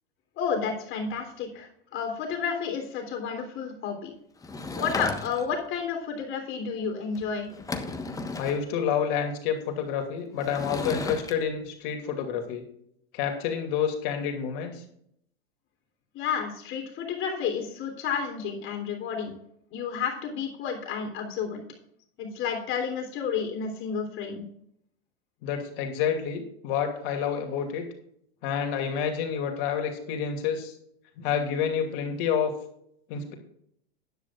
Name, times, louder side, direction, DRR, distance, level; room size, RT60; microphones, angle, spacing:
voice 1, 0.4-4.1 4.8-7.5 16.1-19.4 19.7-21.7 22.2-24.4, left 6 dB, 40° left, 3 dB, 3.3 m, -31 dB
Sliding door / Wood, 4.4-5.6 7.1-7.2 7.5-8.6 10.4-11.3, left 3 dB, 10° left, 1.2 m, -34 dB
voice 2, 8.4-12.6 13.1-14.8 25.4-27.8 28.4-30.7 31.2-32.5 33.1-33.3, left 7 dB, 55° left, 3 dB, 2.6 m, -29 dB
13.5 x 10.5 x 2.4 m, 0.69 s
hypercardioid pair, 100°, 31 cm